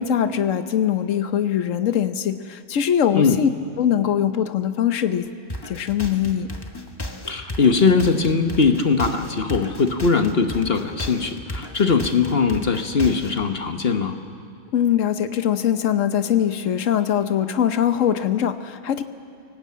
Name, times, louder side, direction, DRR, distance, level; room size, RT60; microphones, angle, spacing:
voice 1, 0.0-3.5 3.8-5.3 5.7-6.5 14.7-19.0, left 9 dB, 90° left, 10 dB, 1.2 m, -22 dB
sound 1, 5.5-13.4, left 1 dB, 20° left, 1.2 m, -34 dB
voice 2, 7.3-14.2, left 5 dB, 50° left, 6 dB, 1.3 m, -20 dB
24.0 x 18.5 x 8.5 m, 2.3 s
omnidirectional pair, 1.3 m